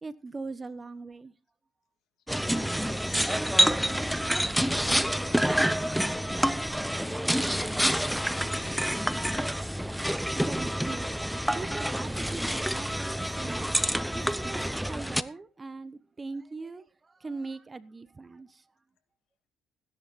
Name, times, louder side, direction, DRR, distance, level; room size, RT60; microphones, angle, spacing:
voice 1, 0.0-1.3 10.3-11.1 11.5-18.6, right 3 dB, 25° right, 1.0 m, -41 dB
sound 1, 2.3-15.2, equal, ahead, 0.7 m, -28 dB
voice 2, 2.5-7.1 7.4-9.6 10.5-10.6, left 9 dB, 65° left, 2.4 m, -53 dB
16.0 x 10.5 x 4.2 m
supercardioid pair, 90°, 0 cm